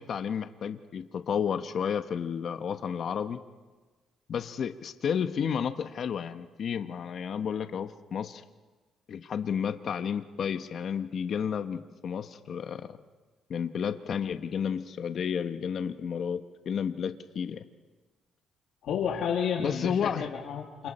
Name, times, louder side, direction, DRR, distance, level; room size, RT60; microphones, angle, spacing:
voice 1, 0.0-3.4 4.3-8.4 9.1-13.0 13.5-17.6 19.6-20.2, left 7 dB, 60° left, 8 dB, 1.2 m, -32 dB
voice 2, 18.8-20.9, left 7 dB, 80° left, -1 dB, 2.6 m, -31 dB
29.0 x 28.0 x 4.4 m, 1.3 s
cardioid pair, 90°, 0 cm